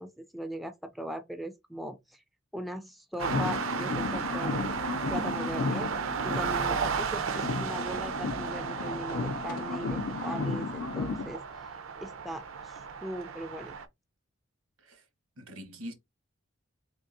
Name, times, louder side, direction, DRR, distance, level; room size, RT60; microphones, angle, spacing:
voice 1, 0.0-2.2 2.5-4.6 5.1-5.9 6.2-11.7 12.0-13.7, equal, ahead, 0.3 m, -39 dB
sound 1, 3.2-7.1 7.3-11.3, left 4 dB, 85° left, 0.5 m, -34 dB
sound 2, 3.2-13.9, right 6 dB, 70° right, 0.5 m, -34 dB
voice 2, 15.4-15.9, equal, 85° right, 1.1 m, -43 dB
3.7 x 3.4 x 2.5 m
head